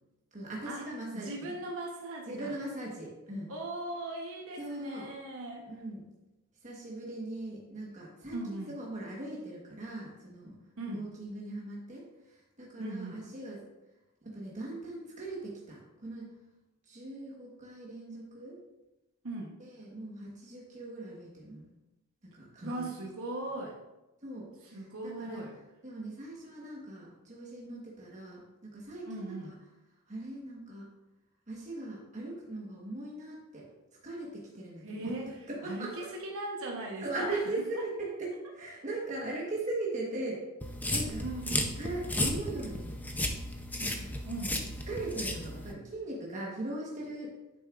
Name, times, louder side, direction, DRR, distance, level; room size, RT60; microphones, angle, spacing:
voice 1, 0.3-1.5 2.3-3.5 4.6-5.1 5.7-6.0 6.6-10.6 10.9-13.6 14.2-16.4 16.9-18.6 19.6-21.7 22.2-23.0 24.2-25.4 25.8-29.5 30.1-30.9 31.5-33.7 34.0-35.1 35.5-35.9 37.0-40.4 40.9-41.2 41.8-43.0 43.8-44.1 44.9-47.3, right 2 dB, 35° right, -4 dB, 1.3 m, -39 dB
voice 2, 1.1-2.5 3.5-5.7 8.3-8.7 10.8-11.1 12.8-13.2 19.2-19.5 22.6-23.8 24.6-25.6 29.0-29.5 34.8-35.3 35.6-37.4 37.7-37.8 41.2-41.8 44.2-44.6, right 2 dB, 65° right, -2 dB, 1.1 m, -39 dB
sound 1, 40.6-45.7, left 1 dB, 10° left, 0.6 m, -34 dB
9.0 x 7.0 x 2.5 m, 1.0 s
head